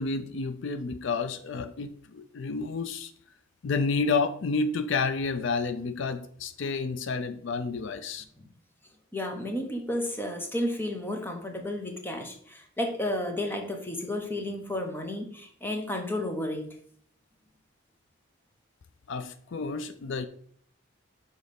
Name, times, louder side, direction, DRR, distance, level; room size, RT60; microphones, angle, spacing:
voice 1, 0.0-3.1 3.6-8.2 19.1-20.3, left 4 dB, 60° left, 11 dB, 0.4 m, -30 dB
voice 2, 9.1-16.6, left 1 dB, 10° left, 3 dB, 1.0 m, -32 dB
6.3 x 3.9 x 5.3 m, 0.62 s
head